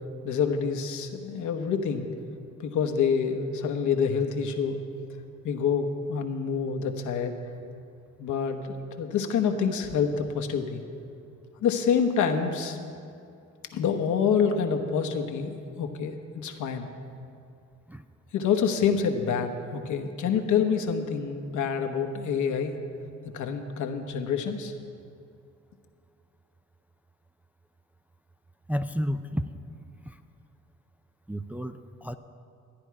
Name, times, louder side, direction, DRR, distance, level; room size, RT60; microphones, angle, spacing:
voice 1, 0.2-2.1 2.6-4.8 5.4-7.3 8.2-10.8 11.6-12.8 13.7-16.9 18.3-22.8 23.3-24.7, left 6 dB, 75° left, 6 dB, 1.1 m, -27 dB
voice 2, 28.7-29.5 30.1-30.2 31.3-32.2, equal, 5° right, 7 dB, 0.3 m, -31 dB
13.0 x 9.7 x 4.7 m, 2.5 s
cardioid pair, 90°, 30 cm